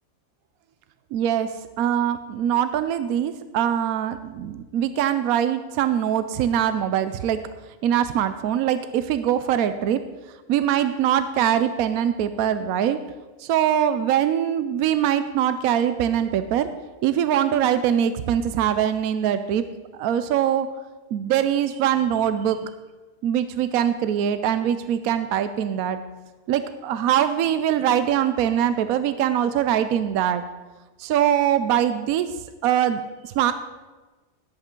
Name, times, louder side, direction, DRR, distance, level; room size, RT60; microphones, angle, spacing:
voice 1, 1.1-1.5 1.8-7.4 7.8-10.0 10.5-13.0 13.4-16.7 17.0-19.6 20.0-20.7 21.1-22.7 23.2-26.0 26.5-30.4 31.0-32.3 32.6-33.5, right 10 dB, 80° right, 11 dB, 1.0 m, -22 dB
17.5 x 8.0 x 3.7 m, 1.2 s
omnidirectional pair, 1.5 m